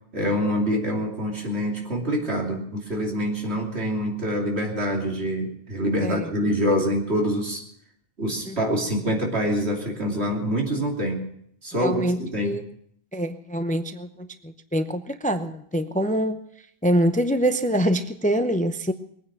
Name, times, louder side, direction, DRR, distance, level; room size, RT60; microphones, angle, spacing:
voice 1, 0.1-7.6 8.2-11.2 11.6-12.6, equal, 80° right, 0 dB, 3.2 m, -25 dB
voice 2, 11.8-12.6 13.1-16.4 16.8-18.9, equal, 10° left, 9 dB, 0.5 m, -25 dB
21.5 x 9.4 x 6.0 m, 0.67 s
omnidirectional pair, 1.1 m